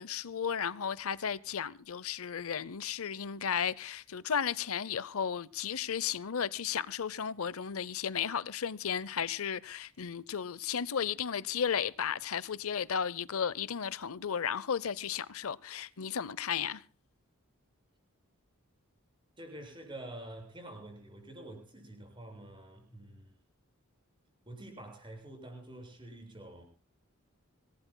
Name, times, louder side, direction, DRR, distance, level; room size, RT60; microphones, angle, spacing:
voice 1, 0.0-16.8, left 7 dB, 70° left, 0.7 m, -34 dB
voice 2, 19.4-23.3 24.5-26.6, right 1 dB, 20° right, 7.0 m, -47 dB
26.0 x 19.0 x 2.2 m
head